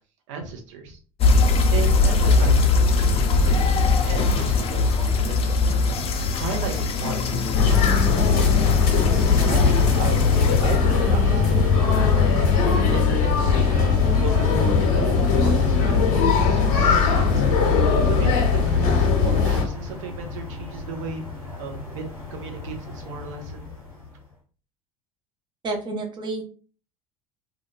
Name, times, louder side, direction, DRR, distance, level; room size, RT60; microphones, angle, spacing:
voice 1, 0.3-1.0 1.7-2.7 3.0-3.7 4.1-5.6 6.3-8.7 9.5-12.3 12.9-13.6 14.2-17.4 17.8-21.3 21.6-23.7, right 5 dB, 60° right, 3 dB, 0.7 m, -35 dB
sound 1, 1.2-10.8, left 3 dB, 35° left, 0.4 m, -21 dB
sound 2, 7.5-19.6, left 5 dB, 55° left, 0.8 m, -19 dB
sound 3, 8.8-24.3, left 3 dB, 85° right, 1.1 m, -37 dB
voice 2, 25.6-26.4, right 2 dB, 25° right, 3 dB, 0.6 m, -29 dB
2.3 x 2.2 x 3.0 m, 0.38 s
figure-of-eight pair, 65°, 18 cm